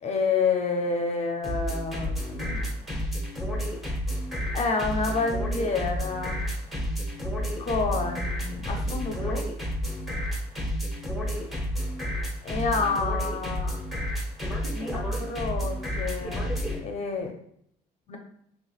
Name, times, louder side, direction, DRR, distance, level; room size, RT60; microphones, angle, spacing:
voice 1, 0.0-2.7 4.5-6.5 7.6-9.4 12.5-13.7 14.7-16.5 16.8-17.3 18.1-18.2, left 4 dB, 40° left, 3 dB, 0.6 m, -29 dB
sound 1, 1.4-16.8, equal, ahead, 0.8 m, -30 dB
3.4 x 3.1 x 2.3 m, 0.70 s
cardioid pair, 110°, 17 cm